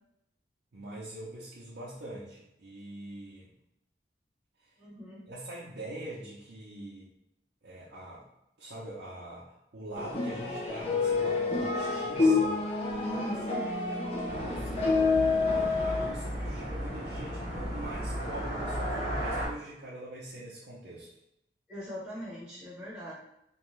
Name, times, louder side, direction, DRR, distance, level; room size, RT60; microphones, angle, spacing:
voice 1, 0.7-3.5 5.3-7.1 7.6-8.2 8.6-12.6 13.9-21.1, right 1 dB, 75° right, -8 dB, 0.6 m, -43 dB
voice 2, 4.8-5.2 13.0-13.6 21.7-23.1, equal, 5° right, -8 dB, 0.8 m, -40 dB
sound 1, 9.9-16.1, left 3 dB, 35° left, 0.5 m, -28 dB
sound 2, 14.2-19.5, equal, 65° left, 0.9 m, -35 dB
2.6 x 2.2 x 3.1 m, 0.81 s
head